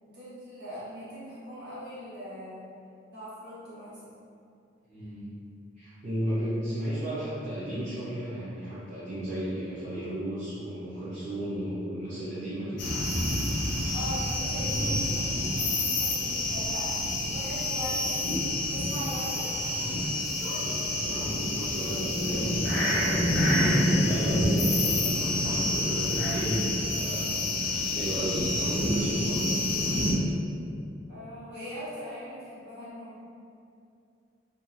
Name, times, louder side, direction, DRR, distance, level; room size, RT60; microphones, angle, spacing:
voice 1, 0.0-2.6 3.1-4.2 13.9-17.0 17.2-18.3 18.6-19.5 31.1-33.2, equal, 60° right, -11 dB, 1.1 m, -40 dB
voice 2, 4.9-5.3 5.8-12.8 20.6-27.4 27.9-29.4, right 1 dB, 45° right, -13 dB, 0.6 m, -34 dB
sound 1, 12.8-30.1, left 1 dB, 85° left, 0.6 m, -27 dB
2.7 x 2.3 x 2.5 m, 2.5 s
head